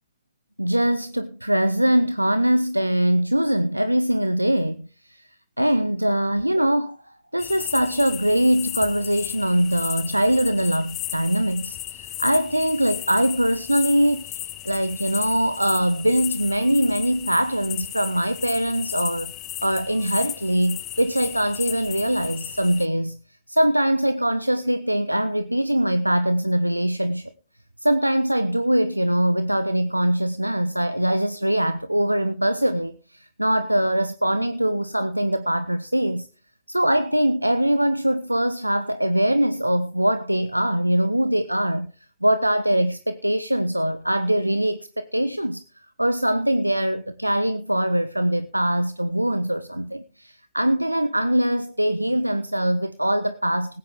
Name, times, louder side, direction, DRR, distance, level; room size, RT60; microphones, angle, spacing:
voice 1, 0.6-5.2 5.6-7.0 7.3-19.3 19.6-23.2 23.5-27.3 27.8-36.3 36.7-41.9 42.2-45.6 46.0-53.8, right 1 dB, 90° right, 0.5 m, -22 dB
sound 1, 7.4-22.9, left 13 dB, 35° left, 0.9 m, -35 dB
19.5 x 9.3 x 3.4 m
figure-of-eight pair, 90°, 0 cm